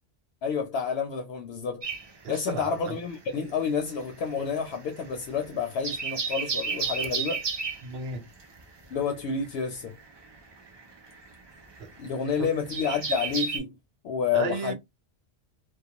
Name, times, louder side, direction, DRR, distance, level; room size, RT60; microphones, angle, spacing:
voice 1, 0.4-1.8 2.3-7.4 8.9-9.9 12.0-13.7 14.0-14.7, left 6 dB, 75° left, 0.8 m, -29 dB
sound 1, 1.8-3.2 3.5-13.6, right 4 dB, 40° right, 0.3 m, -33 dB
voice 2, 2.2-3.0 7.8-8.3 11.8-11.9 12.4-12.5 14.3-14.7, right 4 dB, 70° right, 0.8 m, -33 dB
2.3 x 2.2 x 2.7 m
omnidirectional pair, 1.1 m